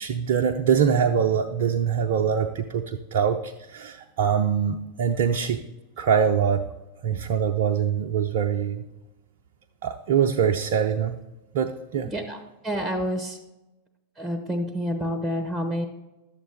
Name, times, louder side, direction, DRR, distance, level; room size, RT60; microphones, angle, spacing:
voice 1, 0.0-5.6 6.0-6.7 7.0-8.8 9.8-11.2 11.5-12.1, right 7 dB, 55° right, 3 dB, 0.5 m, -23 dB
voice 2, 12.0-13.4 14.2-15.9, equal, 5° right, 7 dB, 1.0 m, -28 dB
11.5 x 7.8 x 3.5 m, 1.0 s
figure-of-eight pair, 90°, 0 cm